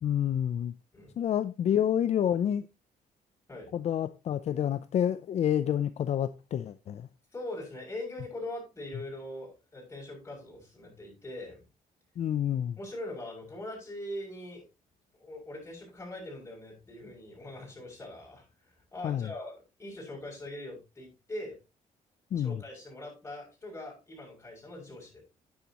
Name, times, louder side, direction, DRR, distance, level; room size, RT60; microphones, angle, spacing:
voice 1, 0.0-0.7 1.2-2.7 3.7-7.1 12.2-12.8 19.0-19.3 22.3-22.6, left 10 dB, 50° left, 0.5 m, -28 dB
voice 2, 7.3-11.6 12.8-14.6 15.2-18.4 18.9-21.6 22.4-25.2, left 1 dB, 20° left, 7.1 m, -42 dB
10.0 x 10.0 x 3.0 m
cardioid pair, 125°, 14 cm